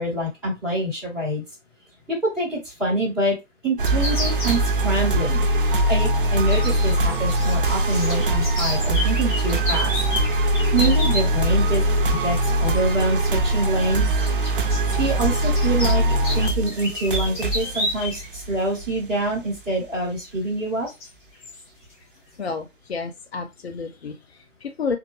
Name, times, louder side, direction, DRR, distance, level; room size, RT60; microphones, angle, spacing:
voice 1, 0.0-1.4 2.1-3.3 3.6-9.9 10.7-11.8 12.1-14.0 15.0-20.9, right 1 dB, ahead, -10 dB, 1.0 m, -26 dB
sound 1, 3.8-19.6, right 1 dB, 45° right, 0.6 m, -22 dB
sound 2, 4.0-4.6 6.5-7.6 7.8-11.3 12.7-12.8 14.0-18.3 18.6-18.7 20.2-20.3 20.9-21.1 21.4-21.6, left 1 dB, 20° left, 1.1 m, -31 dB
voice 2, 22.4-25.0, left 4 dB, 55° left, 4 dB, 0.7 m, -31 dB
3.5 x 2.3 x 3.0 m, 0.22 s
figure-of-eight pair, 145°, 37 cm